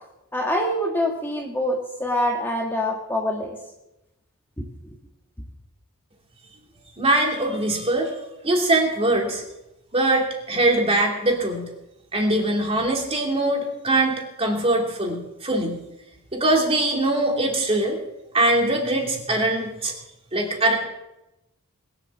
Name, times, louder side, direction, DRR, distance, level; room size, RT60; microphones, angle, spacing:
voice 1, 0.3-3.6 4.8-4.9, left 1 dB, 10° left, 0 dB, 1.6 m, -25 dB
voice 2, 7.0-8.1 8.4-9.4 9.9-11.7 12.1-15.8 16.3-18.0 18.3-19.9 20.3-20.8, right 2 dB, 30° right, 1 dB, 2.9 m, -22 dB
21.0 x 7.9 x 7.3 m, 0.94 s
head